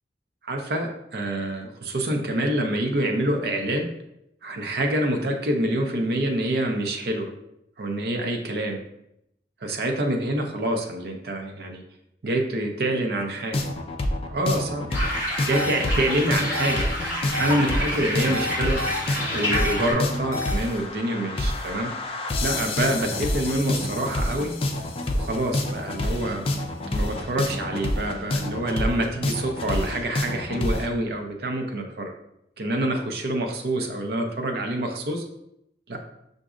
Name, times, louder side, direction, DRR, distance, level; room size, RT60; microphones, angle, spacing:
voice 1, 0.4-3.9 4.4-7.3 7.8-8.8 9.6-11.8 12.2-13.7 14.3-15.0 15.5-16.9 17.4-18.8 19.2-21.9 22.4-24.5 25.1-32.1 32.6-35.2 35.9-36.0, right 1 dB, 65° right, 2 dB, 0.5 m, -26 dB
sound 1, 13.5-30.9, left 1 dB, 30° left, 0.3 m, -28 dB
sound 2, 14.9-19.9, equal, 10° right, 1.3 m, -29 dB
sound 3, 15.5-15.7 16.5-16.7 17.3-17.5 18.3-19.0 19.5-19.7 20.3-20.5, left 2 dB, 65° left, 0.7 m, -30 dB
5.8 x 2.6 x 2.4 m, 0.79 s
head